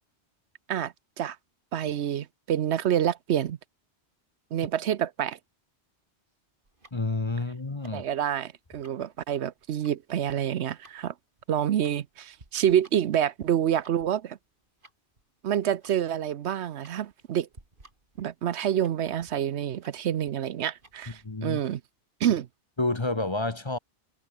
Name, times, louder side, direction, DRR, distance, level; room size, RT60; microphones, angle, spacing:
voice 1, 0.7-1.4 1.7-3.6 4.5-5.4 7.9-11.1 11.5-14.4 15.4-17.5 18.2-21.8 22.2-22.5, right 10 dB, 75° right, 1.0 m, -27 dB
Tick-tock, 6.6-21.3, right 2 dB, 45° right, 3.4 m, -59 dB
voice 2, 6.9-8.0 21.2-21.6 22.8-23.8, left 2 dB, 25° left, 1.1 m, -29 dB
omnidirectional pair, 1.2 m